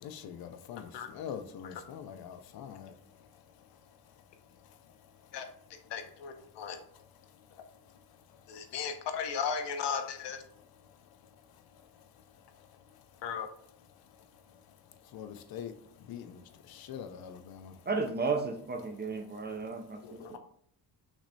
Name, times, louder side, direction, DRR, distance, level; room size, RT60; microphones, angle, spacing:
voice 1, 0.0-4.2 4.5-5.3 6.4-8.8 10.6-13.1 14.0-17.9 19.4-19.5 19.8-20.4, left 8 dB, 60° left, 0.5 m, -48 dB
voice 2, 5.9-6.8 8.5-10.4 13.2-13.5 20.0-20.4, left 6 dB, 85° left, 0.8 m, -36 dB
voice 3, 17.9-20.2, right 4 dB, 25° right, 0.4 m, -33 dB
6.0 x 3.2 x 2.7 m
cardioid pair, 170°, 41 cm